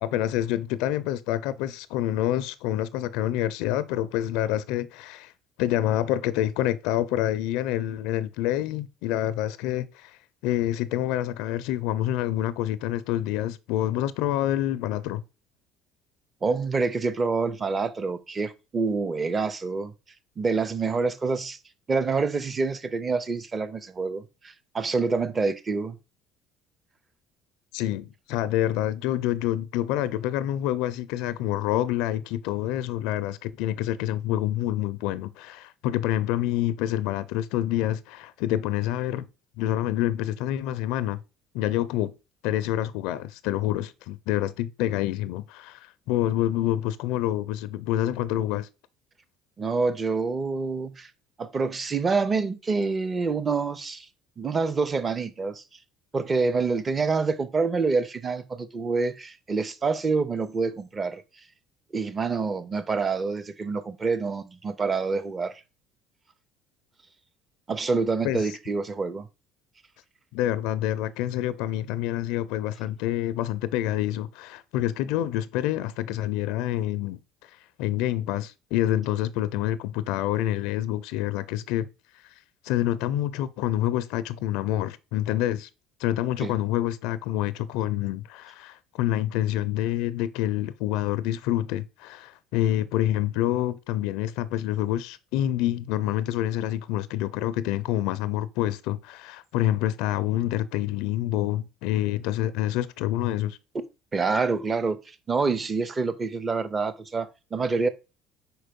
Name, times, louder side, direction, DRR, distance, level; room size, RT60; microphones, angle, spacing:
voice 1, 0.0-5.3 5.6-15.2 27.7-39.3 39.6-41.2 41.5-42.1 42.4-48.7 68.2-68.4 70.3-77.2 77.5-81.9 82.2-82.3 82.6-85.7 86.0-103.6, left 13 dB, 80° left, 0.4 m, -27 dB
voice 2, 16.4-19.9 20.4-21.6 21.9-26.0 49.6-51.1 51.4-54.1 54.4-55.6 56.1-61.2 61.9-65.5 67.7-69.3 86.4-86.5 103.7-103.8 104.1-107.9, right 4 dB, 20° right, 0.6 m, -27 dB
4.5 x 4.5 x 5.1 m
cardioid pair, 140°, 0 cm